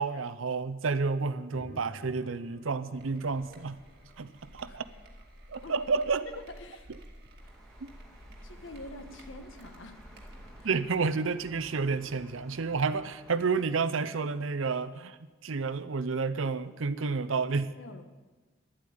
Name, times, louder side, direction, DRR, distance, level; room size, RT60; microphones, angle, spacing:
voice 1, 0.0-3.8 4.2-4.8 5.5-6.3 7.8-7.9 10.6-17.7, right 4 dB, 90° right, 13 dB, 0.7 m, -30 dB
sound 1, 1.5-6.2, equal, 50° left, 3.9 m, -53 dB
sound 2, 2.9-10.8, equal, 50° right, 2.2 m, -52 dB
voice 2, 6.3-6.9 8.4-10.0 10.6-10.8 17.7-18.0, left 2 dB, 75° left, 7 dB, 1.3 m, -46 dB
sound 3, 7.4-13.7, right 1 dB, 5° left, 1.7 m, -55 dB
11.5 x 8.5 x 9.4 m, 1.2 s
head